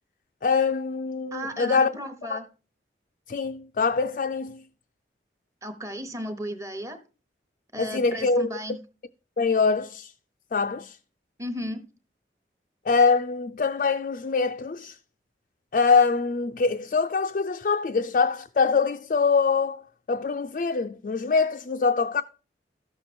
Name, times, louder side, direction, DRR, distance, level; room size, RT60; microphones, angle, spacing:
voice 1, 0.4-1.9 2.3-2.4 3.3-4.7 7.8-8.5 9.4-10.1 10.5-11.0 12.9-15.0 15.7-22.2, left 4 dB, 50° left, 0.4 m, -24 dB
voice 2, 1.3-2.5 5.6-7.0 7.7-8.8 11.4-11.9, equal, 20° right, 1.0 m, -34 dB
13.0 x 6.7 x 4.3 m
head